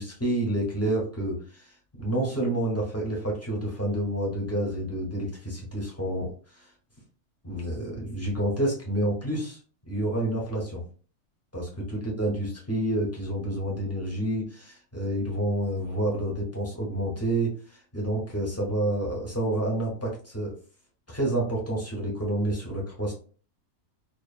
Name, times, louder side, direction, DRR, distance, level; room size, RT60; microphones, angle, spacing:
voice 1, 0.0-6.7 7.4-10.8 11.5-20.5 21.1-23.1, right 1 dB, 20° left, -3 dB, 0.4 m, -29 dB
2.9 x 2.1 x 2.4 m, 0.39 s
omnidirectional pair, 1.6 m